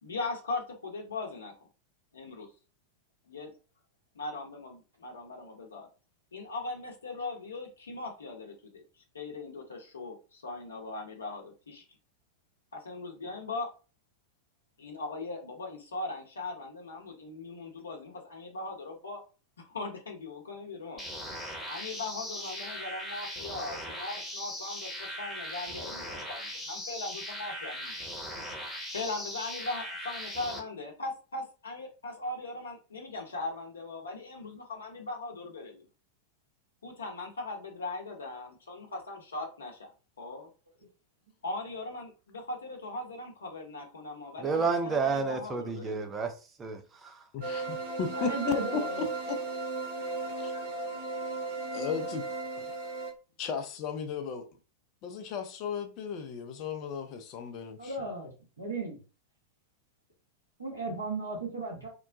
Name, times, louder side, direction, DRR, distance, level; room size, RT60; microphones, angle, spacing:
voice 1, 0.0-1.5 2.1-2.5 3.3-3.5 4.1-5.9 6.3-8.8 9.1-11.8 12.7-13.7 14.8-19.2 19.7-21.1 21.7-28.0 28.9-35.9 36.8-40.5 41.4-46.1, left 3 dB, 70° left, 0.8 m, -39 dB
sound 1, 21.0-30.6, equal, 5° left, 0.9 m, -39 dB
voice 2, 44.4-47.3, right 4 dB, 20° right, 0.5 m, -31 dB
voice 3, 47.3-48.6 50.4-50.5 51.6-52.2 53.4-54.5 55.0-57.9, left 7 dB, 40° left, 0.5 m, -35 dB
sound 2, 47.4-53.1, right 3 dB, 60° right, 0.7 m, -35 dB
voice 4, 48.1-49.0 50.5-50.6 57.8-58.3 58.6-59.0 60.6-61.9, right 2 dB, 80° right, 1.2 m, -35 dB
2.9 x 2.1 x 2.6 m
figure-of-eight pair, 90°, 0 cm